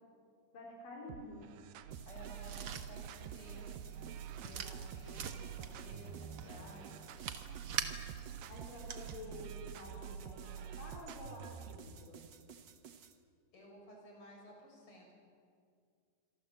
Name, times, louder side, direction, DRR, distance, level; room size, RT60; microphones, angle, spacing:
voice 1, 0.5-1.4 8.5-12.2, left 2 dB, 75° left, -1 dB, 5.9 m, -50 dB
sound 1, 1.1-11.9, right 9 dB, 85° right, 2.7 m, -47 dB
sound 2, 1.9-13.2, right 7 dB, 65° right, 1.0 m, -56 dB
voice 2, 2.0-3.8 4.3-7.1 13.5-15.1, equal, 40° left, 0 dB, 7.6 m, -55 dB
sound 3, 2.1-9.3, right 7 dB, 50° right, 1.9 m, -46 dB
26.5 x 24.0 x 7.8 m, 2.2 s
omnidirectional pair, 3.9 m